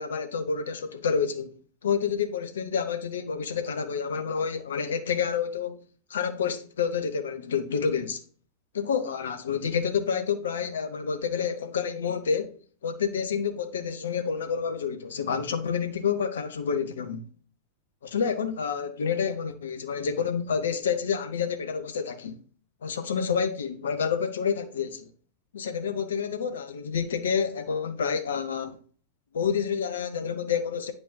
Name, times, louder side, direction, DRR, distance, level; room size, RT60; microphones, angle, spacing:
voice 1, 0.0-5.8 6.1-8.2 8.7-12.5 12.8-17.2 18.0-22.4 22.8-25.1 25.5-28.8 29.3-30.9, left 6 dB, 65° left, 0.8 m, -29 dB
9.1 x 5.0 x 2.8 m
figure-of-eight pair, 90°, 0 cm